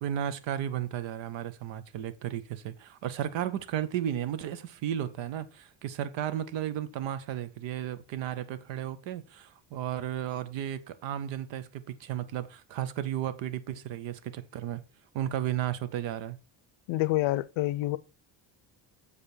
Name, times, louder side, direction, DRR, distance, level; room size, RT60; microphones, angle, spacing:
voice 1, 0.0-14.8 15.1-16.4, right 11 dB, 75° right, 0.8 m, -34 dB
voice 2, 16.9-18.0, left 17 dB, 75° left, 0.6 m, -27 dB
6.9 x 5.0 x 4.3 m
cardioid pair, 120°, 46 cm